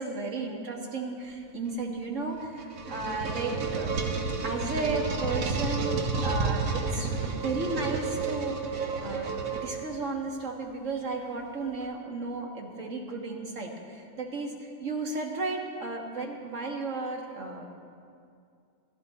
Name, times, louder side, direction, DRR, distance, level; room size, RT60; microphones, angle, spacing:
voice 1, 0.0-3.9 4.4-7.1 7.3-9.3 9.6-17.7, right 3 dB, 65° right, 1 dB, 1.9 m, -34 dB
sound 1, 2.3-10.1, right 4 dB, 80° right, 1.5 m, -30 dB
15.0 x 14.5 x 4.1 m, 2.4 s
omnidirectional pair, 1.4 m